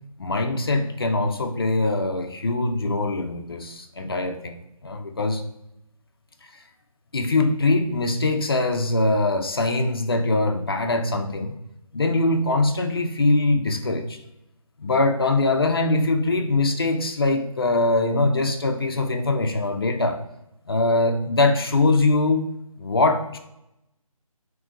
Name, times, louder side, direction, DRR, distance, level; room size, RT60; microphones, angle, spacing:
voice 1, 0.2-4.6 4.8-5.4 7.1-11.5 11.9-14.2 14.8-20.2 20.7-23.4, left 2 dB, 40° left, 5 dB, 0.4 m, -22 dB
7.5 x 2.6 x 2.4 m, 0.85 s
figure-of-eight pair, 170°, 18 cm